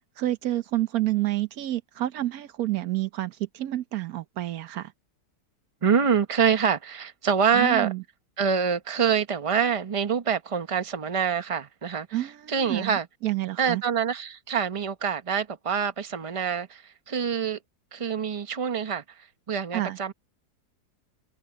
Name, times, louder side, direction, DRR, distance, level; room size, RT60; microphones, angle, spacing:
voice 1, 0.2-4.9 7.5-8.0 12.1-13.8 19.7-20.0, right 15 dB, 65° right, 1.2 m, -29 dB
voice 2, 5.8-7.9 8.4-13.1 13.6-17.6 17.9-20.1, right 7 dB, 25° right, 0.8 m, -26 dB
omnidirectional pair, 1.7 m